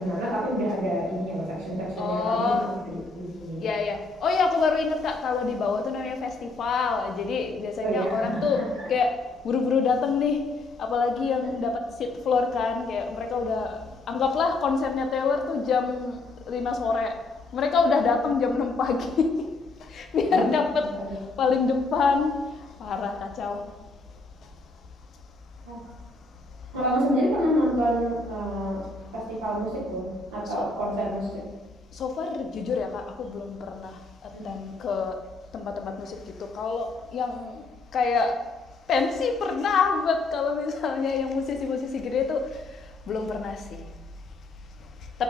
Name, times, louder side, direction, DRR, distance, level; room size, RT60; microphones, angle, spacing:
voice 1, 0.0-3.6 7.8-8.7 11.4-11.5 20.3-20.4 20.9-21.1 25.6-25.8 26.7-28.8 29.1-31.3 34.3-34.4, equal, 85° right, -6 dB, 0.9 m, -28 dB
voice 2, 2.0-2.6 3.6-8.6 8.9-9.1 9.4-10.4 10.8-11.7 12.0-13.8 14.1-16.2 16.5-17.1 17.5-19.3 19.9-20.9 21.4-22.3 22.8-23.6 30.6-30.7 32.0-34.0 34.4-35.2 35.5-36.2 36.5-37.6 37.9-38.3 38.9-42.4 43.1-43.8, left 4 dB, 65° left, 5 dB, 0.4 m, -26 dB
3.0 x 2.5 x 3.4 m, 1.2 s
hypercardioid pair, 45°, 0 cm